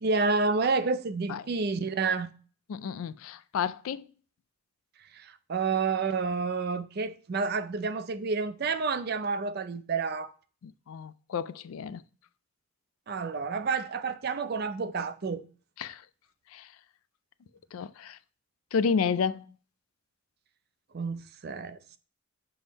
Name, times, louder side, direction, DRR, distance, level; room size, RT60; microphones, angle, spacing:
voice 1, 0.0-2.3 5.1-10.3 13.1-15.4 20.9-22.0, right 4 dB, 50° right, 0.4 m, -29 dB
voice 2, 2.7-4.1 10.6-12.0 15.8-16.0 16.5-16.6 17.7-18.2 18.7-19.4, left 6 dB, 85° left, 0.4 m, -31 dB
7.0 x 3.5 x 4.1 m
head